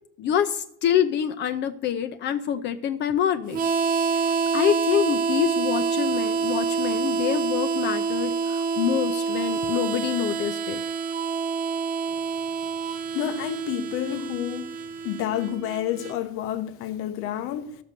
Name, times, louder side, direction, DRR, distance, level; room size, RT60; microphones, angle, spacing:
voice 1, 0.2-3.6 4.1-10.8, left 9 dB, 55° left, 0.6 m, -26 dB
Harmonica, 3.5-16.2, right 5 dB, 40° right, 0.9 m, -27 dB
voice 2, 13.1-14.8 15.0-17.8, left 11 dB, 90° left, 1.0 m, -29 dB
13.5 x 5.9 x 6.6 m
cardioid pair, 145°, 21 cm